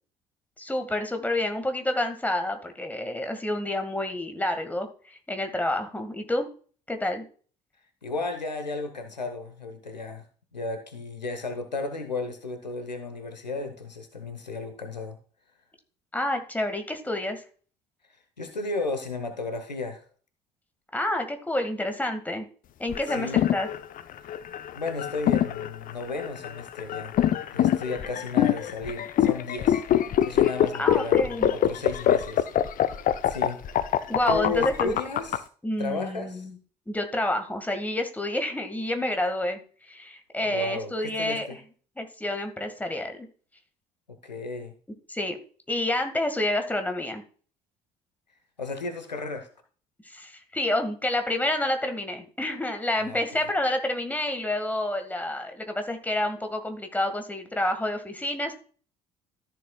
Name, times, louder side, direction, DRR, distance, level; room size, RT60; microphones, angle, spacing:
voice 1, 0.6-6.5 6.9-7.3 16.1-17.4 20.9-22.5 22.8-23.7 30.8-31.5 34.1-34.9 35.6-36.6 36.9-41.5 42.0-43.3 45.1-45.4 45.7-47.2 50.0-58.5, left 1 dB, 5° left, 6 dB, 1.8 m, -29 dB
voice 2, 8.0-10.2 10.5-15.2 18.4-20.0 23.1-23.4 24.7-27.1 27.5-32.5 32.7-32.9 33.3-33.6 33.9-35.4 35.8-36.4 40.4-41.6 44.1-44.7 48.6-49.5 53.0-53.4, left 3 dB, 85° left, 8 dB, 1.0 m, -34 dB
sound 1, 22.9-35.4, left 11 dB, 40° left, 0.7 m, -24 dB
13.5 x 7.0 x 2.3 m, 0.41 s
figure-of-eight pair, 55°, 21 cm